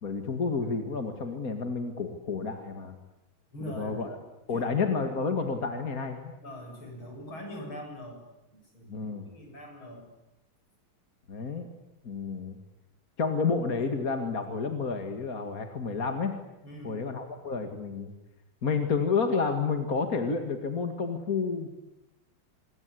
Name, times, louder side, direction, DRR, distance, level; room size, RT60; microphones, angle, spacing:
voice 1, 0.0-3.0 3.6-4.2 4.5-6.3 8.9-9.2 11.3-11.7 12.0-12.6 13.2-16.4 16.8-18.1 18.6-21.7, left 5 dB, 45° left, 6 dB, 2.5 m, -30 dB
voice 2, 3.5-4.2 4.5-5.1 6.4-8.2 8.5-10.1 16.6-17.1, equal, 70° left, 3 dB, 8.5 m, -42 dB
27.0 x 22.0 x 9.9 m, 0.93 s
omnidirectional pair, 2.3 m